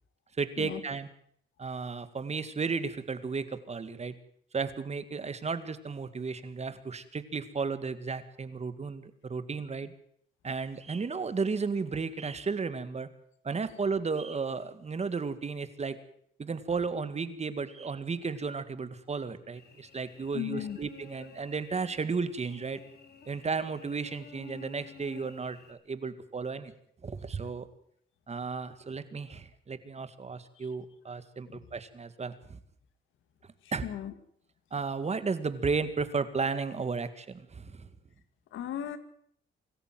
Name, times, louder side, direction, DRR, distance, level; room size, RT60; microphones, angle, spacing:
voice 1, 0.4-1.1 1.6-4.1 4.5-9.9 10.4-13.1 13.4-16.0 16.4-22.8 23.3-26.7 27.0-27.7 28.3-32.6 33.7-33.9 34.7-37.9, right 4 dB, 35° right, 12 dB, 2.1 m, -34 dB
Cricket / Buzz, 19.5-25.7, left 5 dB, 55° left, 4.4 m, -52 dB
voice 2, 20.3-20.8 31.5-31.6 33.8-34.1 38.5-39.0, left 11 dB, 80° left, 11 dB, 2.4 m, -36 dB
25.5 x 14.0 x 7.7 m, 0.65 s
cardioid pair, 90°, 20 cm